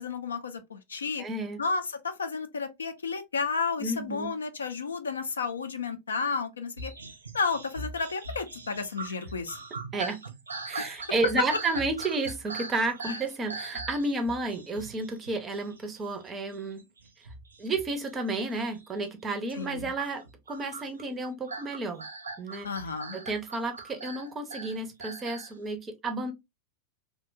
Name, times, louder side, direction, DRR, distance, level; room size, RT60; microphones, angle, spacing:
voice 1, 0.0-1.2 1.6-6.9 7.3-9.6 10.8-11.0 13.1-13.2 19.5-19.9 22.6-23.2, left 4 dB, 70° left, 0.4 m, -32 dB
voice 2, 1.2-1.6 3.8-4.3 9.9-10.2 10.7-16.8 17.6-22.1 22.4-22.7 23.1-26.3, right 2 dB, 20° right, 0.5 m, -32 dB
sound 1, 6.8-16.2 16.5-18.2 18.4-18.9 19.5-25.5, right 3 dB, 75° right, 0.4 m, -41 dB
2.7 x 2.1 x 2.4 m
figure-of-eight pair, 90°, 0 cm